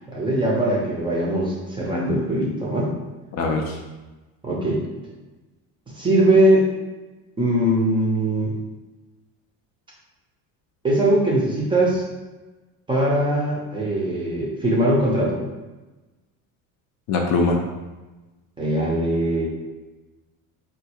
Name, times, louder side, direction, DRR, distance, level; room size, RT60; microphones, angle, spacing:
voice 1, 0.1-2.9 4.4-4.8 5.9-6.7 7.4-8.5 10.8-12.0 12.9-15.4 18.6-19.5, right 1 dB, 15° right, -4 dB, 0.5 m, -21 dB
voice 2, 3.3-3.8 17.1-17.6, left 3 dB, 45° left, 2 dB, 0.5 m, -21 dB
4.3 x 2.4 x 2.8 m, 1.1 s
cardioid pair, 160°, 36 cm